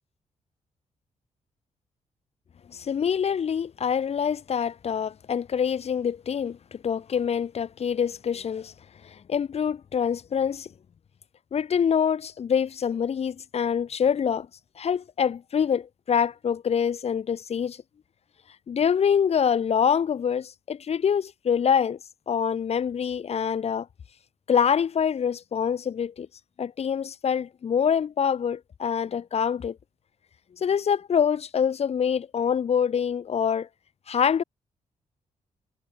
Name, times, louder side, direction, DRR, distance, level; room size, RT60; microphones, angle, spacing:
voice 1, 2.7-8.7 9.0-10.7 11.5-14.5 14.8-17.8 18.7-22.0 22.3-23.9 24.5-26.3 26.6-29.8 30.6-33.7 34.1-34.4, left 7 dB, 50° left, 1.3 m, -25 dB
cardioid pair, 90°, 13 cm